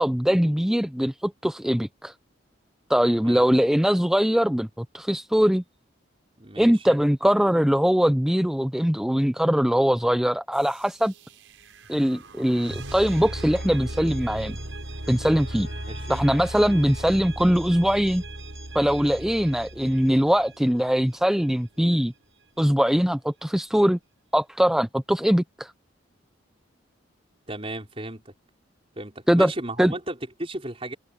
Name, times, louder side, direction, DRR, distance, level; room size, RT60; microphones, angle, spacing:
voice 1, 0.0-2.1 2.9-5.6 6.6-11.1 11.9-14.6 15.1-15.7 16.1-18.2 18.7-22.1 22.6-24.0 24.3-25.7 29.3-29.5 29.8-29.9, equal, 5° right, 0.4 m, -22 dB
voice 2, 6.4-7.0 15.9-16.2 27.5-28.3 29.0-30.9, right 1 dB, 30° right, 4.9 m, -35 dB
sound 1, 10.5-21.4, right 1 dB, 85° right, 5.9 m, -37 dB
sound 2, 14.7-17.3 17.5-17.6, left 4 dB, 50° left, 5.7 m, -48 dB
head